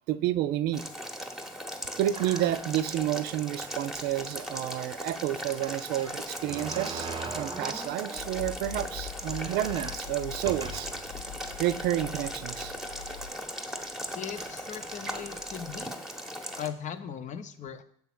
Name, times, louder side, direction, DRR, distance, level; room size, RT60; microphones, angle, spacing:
voice 1, 0.1-0.8 2.0-10.9 11.6-12.7, right 13 dB, 70° right, 14 dB, 0.4 m, -30 dB
Boiling, 0.7-16.7, equal, ahead, 0.9 m, -38 dB
sound 1, 2.1-3.0 3.6-3.7 3.9-4.0 5.6-8.5 8.9-9.0 9.2-11.1 11.7-11.8 12.7-13.0 13.8-13.9 14.3-15.8, right 5 dB, 25° right, 0.7 m, -42 dB
sound 2, 8.1-13.3, left 9 dB, 85° left, 1.5 m, -43 dB
voice 2, 14.1-16.0 16.6-17.8, left 8 dB, 45° left, 10 dB, 0.7 m, -38 dB
7.1 x 3.5 x 6.0 m, 0.63 s
supercardioid pair, 85°, 17 cm